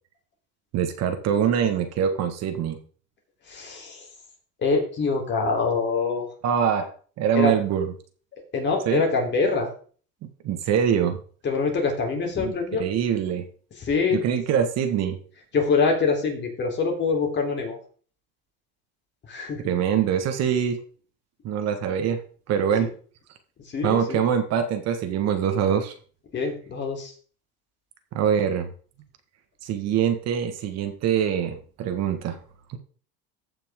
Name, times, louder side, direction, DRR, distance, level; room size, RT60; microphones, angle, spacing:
voice 1, 0.7-2.8 6.4-6.9 7.2-7.9 8.9-9.0 10.4-11.2 12.4-12.5 12.8-13.5 14.1-15.2 19.6-20.8 21.4-22.2 22.5-22.9 23.8-25.9 28.1-28.7 29.6-32.4 32.7-32.8, right 8 dB, 50° right, 7 dB, 1.6 m, -24 dB
voice 2, 3.4-4.1 4.6-6.3 7.3-7.5 8.5-9.7 11.4-12.9 13.7-14.2 15.5-17.8 19.2-19.7 23.6-24.2 26.3-27.1, left 4 dB, 35° left, 1 dB, 3.4 m, -25 dB
15.0 x 5.9 x 3.6 m, 0.42 s
cardioid pair, 130°, 33 cm